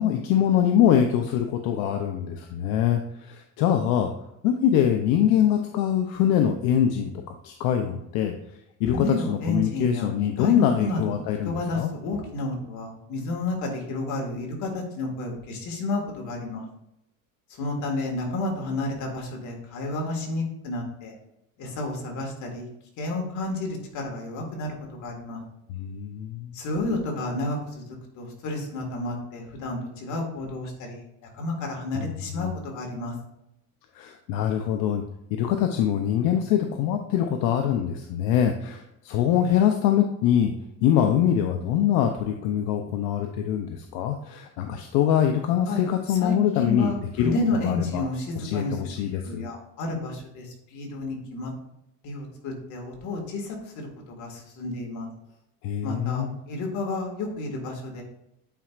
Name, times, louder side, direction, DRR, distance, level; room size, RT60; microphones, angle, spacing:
voice 1, 0.0-4.1 4.4-7.1 7.4-8.3 8.8-11.9 25.7-26.6 31.9-32.5 33.9-35.0 35.3-40.5 40.8-47.3 47.6-48.0 48.4-49.5 55.6-56.4, left 9 dB, 80° left, 4 dB, 0.7 m, -24 dB
voice 2, 8.9-10.1 10.4-16.7 17.6-21.1 21.6-22.7 23.0-24.7 25.0-25.4 26.5-32.5 32.7-33.1 45.7-48.8 49.2-51.5 52.0-55.1 55.8-58.0, left 2 dB, 60° left, 1 dB, 2.0 m, -31 dB
9.0 x 4.4 x 2.4 m, 0.82 s
cardioid pair, 135°, 34 cm